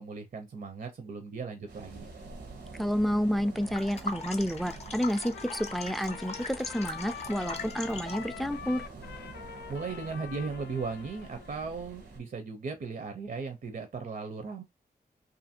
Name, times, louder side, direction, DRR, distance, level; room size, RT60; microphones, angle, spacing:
voice 1, 0.0-2.1 9.7-14.6, right 4 dB, 55° right, 0.6 m, -37 dB
sound 1, 1.7-12.2, right 3 dB, 80° right, 0.8 m, -47 dB
voice 2, 2.8-8.8, equal, ahead, 0.3 m, -30 dB
sound 2, 3.6-8.4, left 3 dB, 40° left, 0.6 m, -40 dB
Trumpet, 5.0-11.5, left 8 dB, 85° left, 0.4 m, -45 dB
2.7 x 2.5 x 2.7 m
wide cardioid pair, 75°, 17 cm